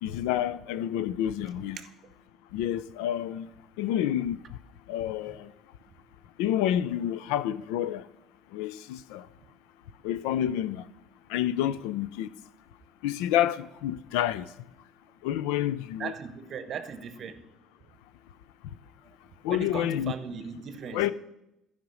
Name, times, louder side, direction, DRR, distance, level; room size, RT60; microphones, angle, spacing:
voice 1, 0.0-1.8 2.5-3.5 3.8-4.4 4.9-5.5 6.4-8.1 8.5-9.3 10.0-10.9 11.3-12.3 13.0-14.5 15.2-16.1 19.4-20.1 20.9-21.1, left 11 dB, 85° left, 0.5 m, -29 dB
voice 2, 16.0-17.4 19.5-21.0, right 6 dB, 45° right, 1.0 m, -38 dB
13.5 x 5.2 x 6.2 m
cardioid pair, 110°, 0 cm